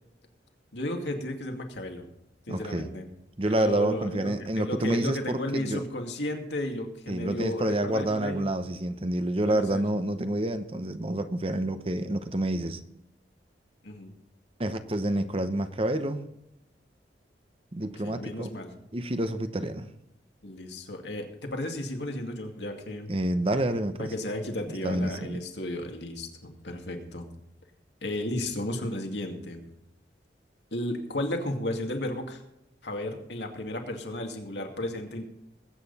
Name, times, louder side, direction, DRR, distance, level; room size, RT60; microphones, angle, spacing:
voice 1, 0.7-2.1 2.5-3.1 3.4-8.5 9.4-9.8 13.8-14.1 18.0-18.7 20.4-23.1 24.0-27.3 28.0-29.6 30.7-32.4 32.8-35.2, left 1 dB, 75° left, 3 dB, 2.4 m, -34 dB
voice 2, 2.5-2.9 3.4-5.8 7.1-12.8 14.6-16.2 17.7-18.5 18.9-19.9 23.1-24.1 24.7-25.4, right 1 dB, 30° right, 10 dB, 0.8 m, -28 dB
20.5 x 8.9 x 4.2 m, 0.83 s
head